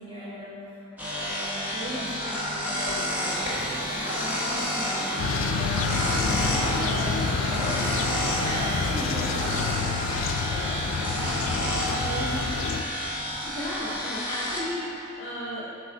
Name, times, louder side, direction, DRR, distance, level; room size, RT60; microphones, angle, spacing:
voice 1, 0.0-9.7 10.5-11.4 11.9-12.8, equal, 25° right, -8 dB, 1.4 m, -38 dB
sound 1, 1.0-14.6, equal, 10° right, 1.2 m, -30 dB
sound 2, 3.0-9.7, equal, 75° right, 1.3 m, -38 dB
sound 3, 5.2-12.8, left 5 dB, 70° left, 0.3 m, -29 dB
voice 2, 13.4-14.9 15.2-15.7, left 1 dB, 30° left, -7 dB, 1.1 m, -33 dB
8.1 x 6.0 x 3.8 m, 2.9 s
head